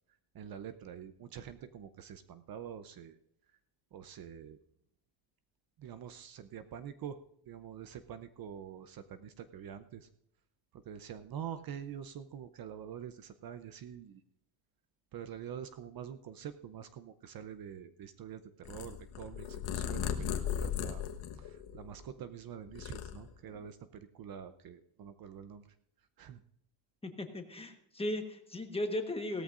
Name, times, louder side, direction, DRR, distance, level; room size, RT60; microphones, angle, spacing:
voice 1, 0.3-3.2 3.9-4.6 5.8-7.2 7.5-10.1 10.7-14.2 15.1-21.0 21.3-25.7 26.2-26.4, right 8 dB, 45° right, 11 dB, 0.7 m, -46 dB
Purr, 18.6-22.2 22.6-23.7, left 9 dB, 70° left, 1.3 m, -37 dB
voice 2, 27.0-29.4, left 1 dB, 10° left, 5 dB, 1.2 m, -37 dB
17.5 x 13.5 x 2.5 m, 0.74 s
cardioid pair, 155°, 49 cm